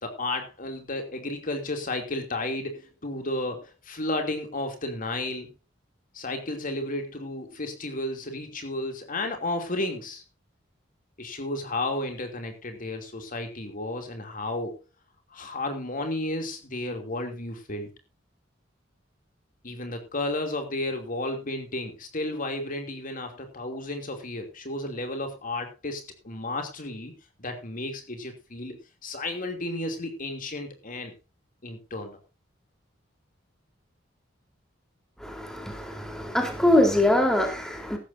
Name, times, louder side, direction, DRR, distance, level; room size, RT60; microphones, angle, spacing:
voice 1, 0.0-5.5 6.1-10.2 11.2-14.8 15.3-17.9 19.6-27.1 27.4-31.1 31.6-32.2, left 2 dB, 45° left, 2.9 m, -33 dB
voice 2, 35.2-38.0, left 1 dB, 5° left, 3.7 m, -23 dB
16.5 x 13.5 x 2.7 m
head